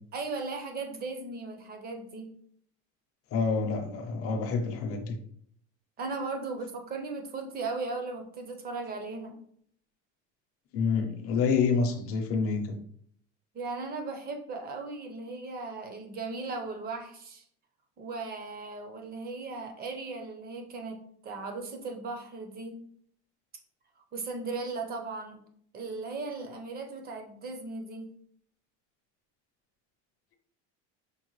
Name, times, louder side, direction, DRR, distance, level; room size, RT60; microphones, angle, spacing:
voice 1, 0.1-2.4 6.0-9.4 13.5-17.4 18.0-22.8 24.1-25.4 25.7-28.1, right 3 dB, 30° right, 0.6 m, -37 dB
voice 2, 3.3-5.1 10.7-12.8, left 5 dB, 45° left, 0.7 m, -28 dB
5.3 x 2.1 x 3.1 m
cardioid pair, 150°, 33 cm